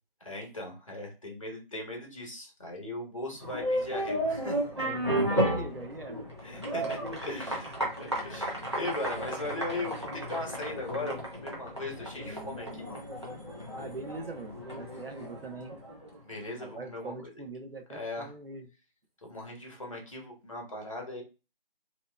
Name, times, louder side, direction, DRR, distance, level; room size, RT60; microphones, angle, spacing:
voice 1, 0.2-4.8 6.4-13.0 16.2-17.3 17.9-18.3 19.2-21.2, left 2 dB, 35° left, 0 dB, 1.0 m, -39 dB
sound 1, 3.4-16.1, right 1 dB, 30° right, 0.7 m, -33 dB
voice 2, 4.8-6.2 6.7-7.4 7.8-7.9 13.7-15.8 16.6-18.7, right 2 dB, 70° right, 5 dB, 0.9 m, -42 dB
3.1 x 2.9 x 2.2 m, 0.30 s
figure-of-eight pair, 170°, 29 cm